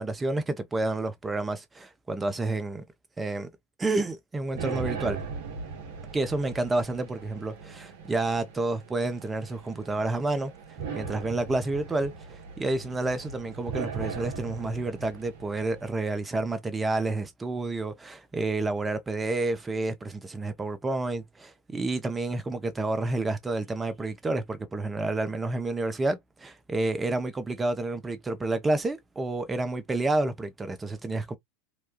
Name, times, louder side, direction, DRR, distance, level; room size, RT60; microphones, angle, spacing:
voice 1, 0.0-2.8 3.2-3.5 3.8-5.2 6.1-10.5 10.9-31.4, right 2 dB, 15° right, 0.7 m, -29 dB
sound 1, 4.6-16.0, right 5 dB, 65° right, 0.8 m, -39 dB
2.9 x 2.2 x 2.3 m
hypercardioid pair, 85°, 0 cm